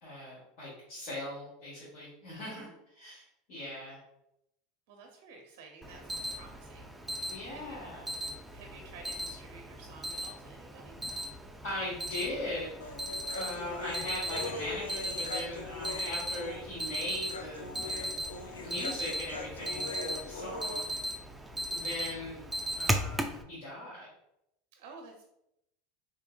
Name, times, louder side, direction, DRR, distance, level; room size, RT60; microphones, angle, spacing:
voice 1, 0.0-4.0 7.3-8.1 11.6-12.8 13.2-18.1 18.6-20.9 21.7-22.4 22.7-24.1, left 1 dB, 60° left, -8 dB, 1.3 m, -40 dB
voice 2, 4.9-6.9 7.5-7.8 8.5-11.0 20.4-20.7 24.8-25.3, right 4 dB, 65° right, 2 dB, 0.5 m, -52 dB
Alarm, 5.8-23.4, equal, 10° right, 0.4 m, -37 dB
Human voice, 12.8-20.8, left 2 dB, 85° left, 0.4 m, -41 dB
3.7 x 2.7 x 2.3 m, 0.81 s
hypercardioid pair, 80°, 0 cm